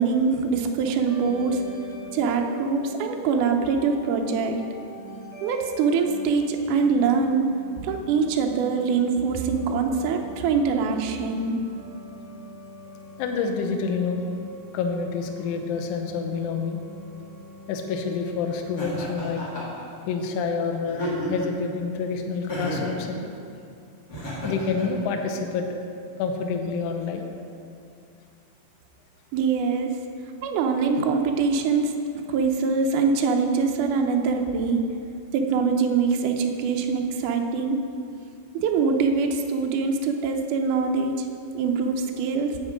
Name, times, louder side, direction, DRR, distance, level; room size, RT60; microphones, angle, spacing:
voice 1, 0.0-1.6 2.1-4.6 5.4-7.5 7.8-11.6 29.3-30.0 30.4-32.0 32.3-34.8 35.3-37.8 38.5-41.2 41.5-42.5, right 5 dB, 85° right, 3 dB, 1.8 m, -23 dB
sound 1, 1.1-19.0, right 1 dB, 65° right, 2.7 m, -44 dB
voice 2, 13.2-14.3 14.7-16.8 17.7-19.4 20.1-23.3 24.4-25.7 26.2-27.2, left 5 dB, 90° left, 4 dB, 1.8 m, -28 dB
Laughter, 18.8-19.8 20.9-21.6 22.5-23.0 24.1-24.9, right 1 dB, 35° left, 1.6 m, -32 dB
8.8 x 8.0 x 5.0 m, 2.5 s
omnidirectional pair, 4.5 m